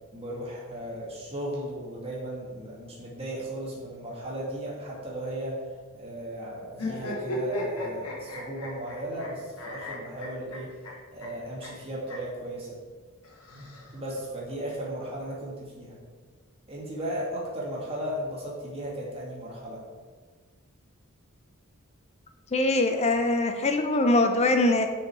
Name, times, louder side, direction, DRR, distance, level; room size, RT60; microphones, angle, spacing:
voice 1, 0.1-5.6 5.9-10.7 11.1-12.8 13.9-16.0 16.7-19.8, right 1 dB, 25° right, -5 dB, 2.1 m, -36 dB
sound 1, 6.7-9.3 9.6-10.9 11.2-11.3 11.6-11.7 12.0-12.2 13.2-14.2, left 1 dB, 80° left, 1.7 m, -36 dB
voice 2, 22.5-24.9, left 2 dB, 30° left, 6 dB, 0.5 m, -22 dB
6.4 x 5.4 x 4.8 m, 1.5 s
head